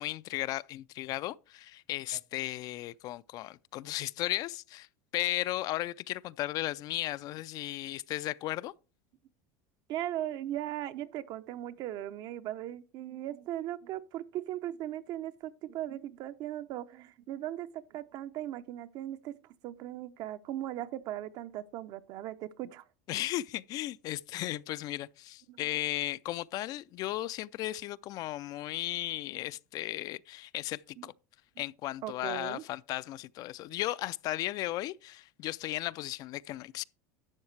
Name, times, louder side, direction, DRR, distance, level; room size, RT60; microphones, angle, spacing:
voice 1, 0.0-4.9 5.1-8.7 23.1-31.1 31.6-36.8, left 15 dB, 45° left, 0.3 m, -35 dB
voice 2, 9.9-19.3 19.6-22.8 25.5-25.6 31.0-31.1 32.0-32.6, right 13 dB, 50° right, 0.6 m, -38 dB
11.5 x 7.1 x 3.2 m
supercardioid pair, 120°, 9 cm